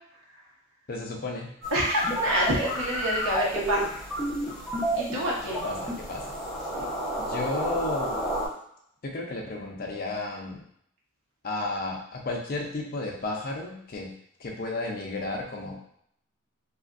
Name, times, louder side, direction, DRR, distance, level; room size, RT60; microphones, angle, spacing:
voice 1, 0.9-1.5 5.6-6.2 7.3-8.2 9.0-10.6 11.4-14.1 14.4-15.8, left 2 dB, 45° left, 0 dB, 0.5 m, -33 dB
sound 1, 1.6-8.5, right 1 dB, ahead, 0.8 m, -31 dB
voice 2, 1.7-4.0 4.9-5.6 6.7-6.9, equal, 80° right, -4 dB, 0.9 m, -27 dB
3.3 x 2.4 x 2.5 m, 0.69 s
head